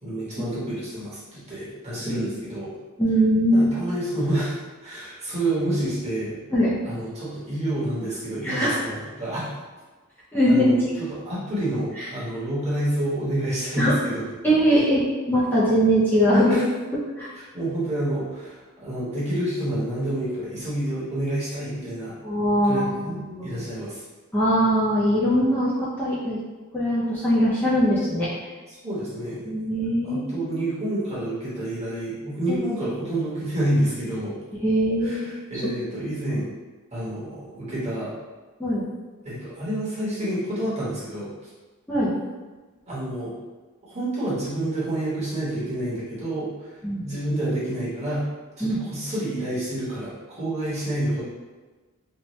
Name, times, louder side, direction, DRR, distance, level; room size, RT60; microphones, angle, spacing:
voice 1, 0.0-2.7 3.5-6.4 6.8-9.5 10.5-14.5 16.5-16.6 17.5-22.1 22.6-23.1 23.4-24.0 28.7-29.4 30.0-34.3 35.0-36.5 36.9-38.1 39.2-41.5 42.9-43.3 43.9-46.7 47.0-48.2 48.6-51.2, right 1 dB, 30° right, -9 dB, 1.1 m, -28 dB
voice 2, 3.0-3.7 6.5-6.7 8.4-8.8 10.3-10.7 12.0-12.1 13.8-13.9 14.4-16.6 17.2-17.3 22.2-23.5 24.3-25.7 26.0-26.4 26.7-28.3 29.5-30.5 32.5-32.6 34.6-35.3 38.6-38.8 41.9-42.1 46.8-47.0 48.6-48.8, equal, 10° left, -10 dB, 0.4 m, -21 dB
2.7 x 2.2 x 3.0 m, 1.3 s
head